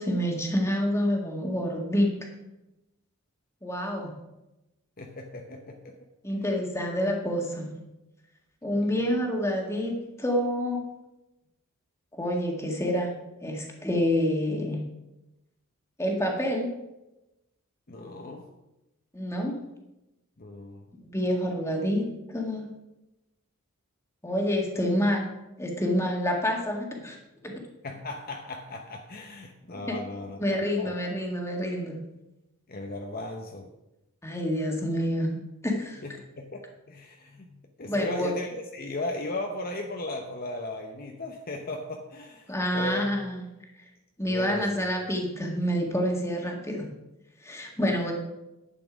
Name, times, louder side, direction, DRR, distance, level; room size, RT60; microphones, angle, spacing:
voice 1, 0.0-2.1 3.6-4.1 6.2-7.8 8.6-10.8 12.1-13.2 13.4-14.8 16.0-16.7 19.1-19.6 21.1-22.7 24.2-25.3 25.6-27.2 27.4-27.5 29.9-30.0 30.4-32.0 34.2-36.0 37.9-38.3 42.5-43.4 44.2-46.9 47.4-48.1, equal, 15° left, 1 dB, 1.8 m, -28 dB
voice 2, 5.0-5.9 8.8-9.1 17.9-18.5 20.4-20.8 27.8-30.9 32.7-33.7 36.0-43.1 44.3-44.9, left 2 dB, 40° left, 3 dB, 0.9 m, -36 dB
11.0 x 8.5 x 5.1 m, 0.96 s
head